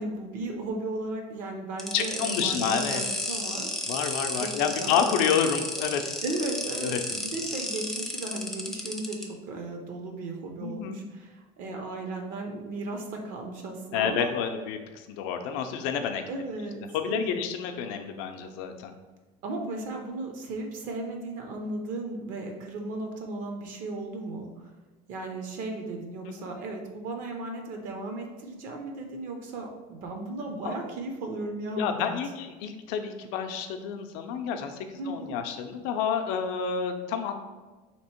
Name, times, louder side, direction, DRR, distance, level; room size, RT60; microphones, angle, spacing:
voice 1, 0.0-3.9 4.3-5.0 6.2-14.3 16.3-17.4 19.4-24.7 25.1-32.2 35.0-35.3, right 2 dB, 55° right, 3 dB, 0.6 m, -36 dB
sound 1, 1.8-9.2, left 1 dB, ahead, 0.3 m, -33 dB
voice 2, 1.9-3.0 3.9-6.2 6.8-7.0 10.6-11.0 13.9-16.2 16.9-18.9 26.3-26.5 30.6-30.8 31.8-37.3, left 7 dB, 90° left, 6 dB, 0.5 m, -29 dB
3.5 x 2.9 x 4.3 m, 1.2 s
cardioid pair, 170°, 16 cm